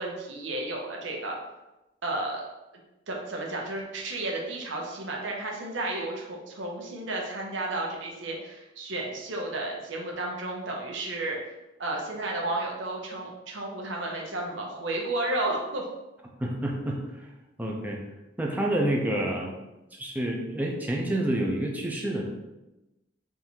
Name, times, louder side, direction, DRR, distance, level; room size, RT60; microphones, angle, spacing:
voice 1, 0.0-1.4 2.0-2.4 3.1-11.5 11.8-15.8, right 2 dB, 85° right, -1 dB, 0.9 m, -32 dB
voice 2, 16.4-17.3 17.6-18.0 18.4-19.6 19.9-22.3, right 1 dB, 10° right, -1 dB, 0.6 m, -28 dB
3.6 x 2.7 x 4.5 m, 0.99 s
head